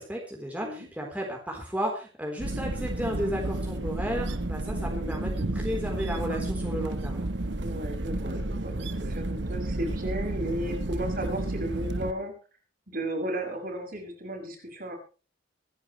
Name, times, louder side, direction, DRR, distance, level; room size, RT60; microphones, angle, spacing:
voice 1, 0.0-7.3, equal, 10° right, -1 dB, 4.0 m, -33 dB
sound 1, 2.4-12.1, right 2 dB, 65° right, 1.2 m, -31 dB
voice 2, 4.9-5.3 7.6-12.3 12.9-14.9, right 1 dB, 50° right, 2 dB, 6.1 m, -34 dB
25.0 x 11.0 x 3.3 m, 0.34 s
head